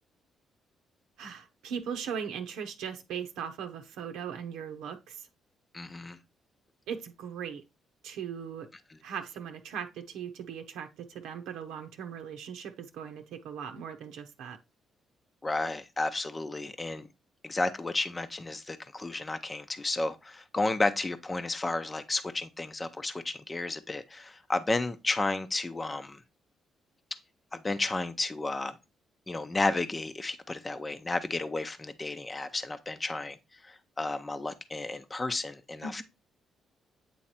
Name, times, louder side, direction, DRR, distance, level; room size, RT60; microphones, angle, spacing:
voice 1, 1.2-5.2 6.9-7.6 8.0-8.7 9.0-14.6 35.8-36.0, right 7 dB, 90° right, 0.9 m, -39 dB
voice 2, 5.7-6.2 15.4-17.1 17.4-26.2 27.5-28.8 29.3-33.4 33.6-36.0, left 2 dB, 20° left, 0.7 m, -32 dB
8.5 x 3.2 x 4.2 m
cardioid pair, 90°, 0 cm